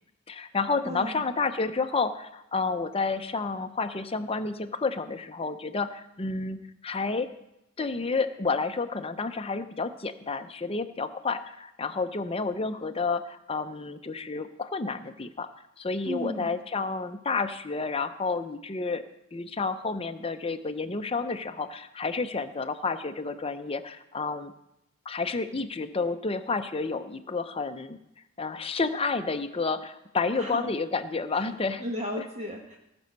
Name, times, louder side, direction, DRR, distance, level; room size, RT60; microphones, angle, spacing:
voice 1, 0.3-7.3 7.8-15.5 15.8-19.0 19.3-24.5 25.1-28.0 28.4-31.8 32.2-32.3, left 4 dB, 25° left, 9 dB, 0.6 m, -30 dB
voice 2, 0.8-1.2 16.1-16.5 30.3-30.7 31.3-31.4 31.8-32.8, equal, 30° right, 1 dB, 1.0 m, -35 dB
18.0 x 6.2 x 5.3 m, 0.87 s
head